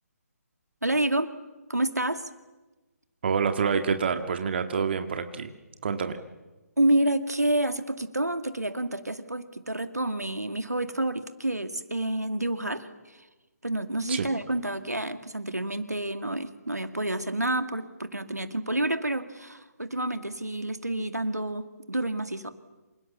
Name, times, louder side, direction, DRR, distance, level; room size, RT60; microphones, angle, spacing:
voice 1, 0.8-1.3 1.7-2.3 6.8-13.2 13.6-22.5, right 1 dB, 80° right, 9 dB, 2.3 m, -29 dB
voice 2, 3.2-5.5 5.8-6.2 14.1-14.3, right 6 dB, 40° right, 7 dB, 1.8 m, -27 dB
28.5 x 27.5 x 7.2 m, 1.1 s
figure-of-eight pair, 140°, 9 cm